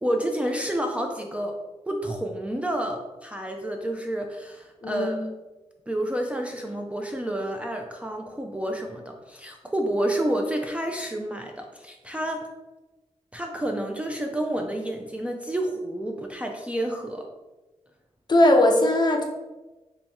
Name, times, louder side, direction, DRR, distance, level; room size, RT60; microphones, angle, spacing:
voice 1, 0.0-1.5 1.9-5.3 5.9-12.5 13.3-17.3, right 1 dB, 10° right, 2 dB, 0.3 m, -29 dB
voice 2, 4.8-5.2 18.3-19.2, left 1 dB, 40° left, 2 dB, 0.6 m, -19 dB
3.0 x 2.8 x 3.5 m, 1.1 s
wide cardioid pair, 100°, 12 cm